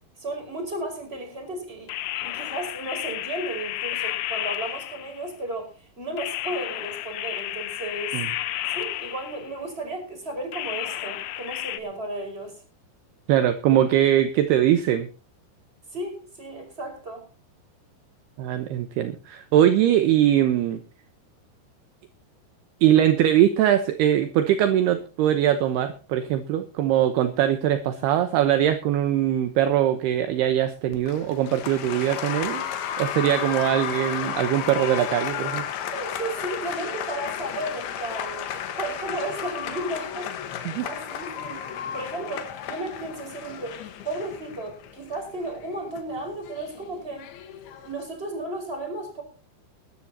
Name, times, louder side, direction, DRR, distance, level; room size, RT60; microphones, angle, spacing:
voice 1, 0.2-1.9 2.2-8.2 8.7-12.6 15.9-17.2 35.9-47.3 47.8-49.2, right 1 dB, 15° right, 4.8 m, -34 dB
sound 1, 1.9-5.3 6.2-9.6 10.5-11.8, left 14 dB, 85° left, 3.3 m, -32 dB
voice 2, 13.3-15.1 18.4-20.8 22.8-32.7 33.0-35.6 40.7-40.9, right 11 dB, 75° right, 2.7 m, -21 dB
Applause, 30.9-48.1, left 9 dB, 65° left, 3.1 m, -33 dB
21.0 x 13.5 x 2.9 m
omnidirectional pair, 5.3 m